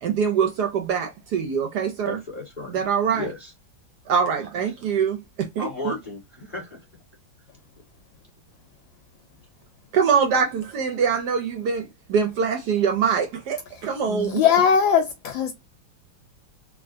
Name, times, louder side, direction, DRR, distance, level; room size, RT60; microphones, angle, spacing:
voice 1, 0.0-2.2 2.7-3.3 4.1-5.9 9.9-14.4, right 6 dB, 70° right, 1.0 m, -24 dB
voice 2, 2.1-2.8 3.1-3.5 5.6-6.8, left 2 dB, 25° left, 1.4 m, -34 dB
voice 3, 14.1-15.5, left 7 dB, 75° left, 1.2 m, -20 dB
3.4 x 2.3 x 2.5 m
omnidirectional pair, 2.2 m